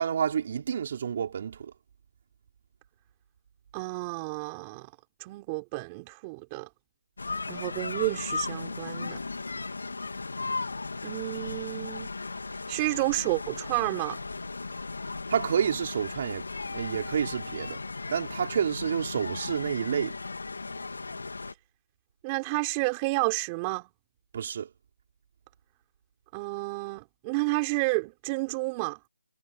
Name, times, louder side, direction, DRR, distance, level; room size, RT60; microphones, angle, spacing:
voice 1, 0.0-1.7 15.3-17.8 18.1-20.1 24.3-24.7, right 8 dB, 35° right, 4.0 m, -29 dB
voice 2, 3.7-4.9 5.2-6.7 7.5-9.2 11.0-12.1 12.7-14.2 22.2-23.8 26.3-29.0, right 26 dB, 15° right, 3.7 m, -30 dB
sound 1, 7.2-21.5, left 3 dB, 70° left, 3.7 m, -36 dB
figure-of-eight pair, 165°, 0 cm